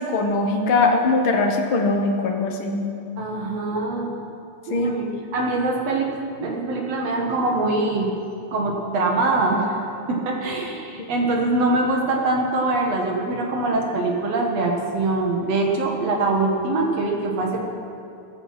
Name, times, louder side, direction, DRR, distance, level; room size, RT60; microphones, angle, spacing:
voice 1, 0.0-2.8 4.7-4.9, left 3 dB, 65° left, 3 dB, 1.2 m, -21 dB
voice 2, 3.2-4.2 4.7-8.1 8.5-9.8 10.1-17.6, right 2 dB, 55° right, 1 dB, 2.2 m, -23 dB
15.0 x 15.0 x 5.8 m, 2.6 s
omnidirectional pair, 4.1 m